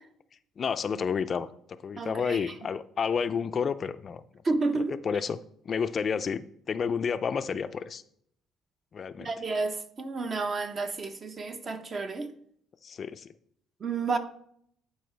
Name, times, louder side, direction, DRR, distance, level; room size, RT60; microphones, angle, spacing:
voice 1, 0.6-1.5 1.8-4.2 5.0-5.4 5.6-8.0 8.9-9.3 12.8-13.3, left 6 dB, 45° left, 0.4 m, -30 dB
voice 2, 2.0-2.5 4.4-5.0 9.2-12.3 13.8-14.2, right 3 dB, 40° right, 0.9 m, -31 dB
11.0 x 4.6 x 3.3 m
cardioid pair, 90°, 0 cm